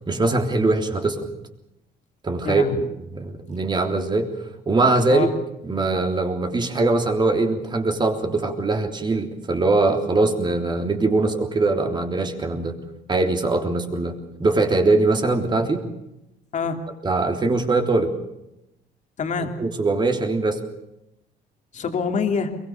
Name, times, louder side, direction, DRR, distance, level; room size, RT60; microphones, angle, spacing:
voice 1, 0.1-1.3 2.2-2.8 3.1-4.3 4.7-5.3 5.6-12.8 13.1-14.1 14.4-15.8 17.0-18.1 19.6-20.6, right 3 dB, 25° right, 5 dB, 3.4 m, -21 dB
voice 2, 2.4-2.9 5.1-5.3 16.5-16.8 19.2-19.5 21.7-22.5, left 5 dB, 45° left, 5 dB, 3.0 m, -25 dB
23.0 x 22.5 x 7.0 m, 0.86 s
cardioid pair, 110°, 17 cm